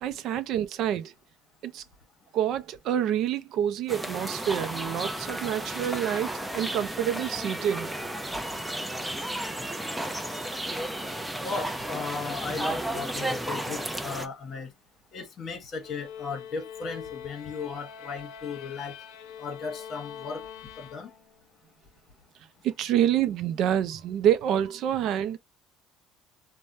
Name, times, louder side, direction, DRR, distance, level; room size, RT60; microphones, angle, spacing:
voice 1, 0.0-1.1 1.6-1.8 2.3-7.9 22.6-25.4, right 10 dB, 60° right, 0.4 m, -27 dB
sound 1, 3.9-14.3, right 1 dB, 5° right, 0.5 m, -33 dB
voice 2, 11.4-14.7 15.1-18.9 19.4-20.4 20.8-21.1, left 5 dB, 40° left, 1.0 m, -36 dB
sound 2, 15.8-21.5, left 8 dB, 80° left, 0.6 m, -43 dB
3.3 x 2.1 x 2.6 m
cardioid pair, 130°, 0 cm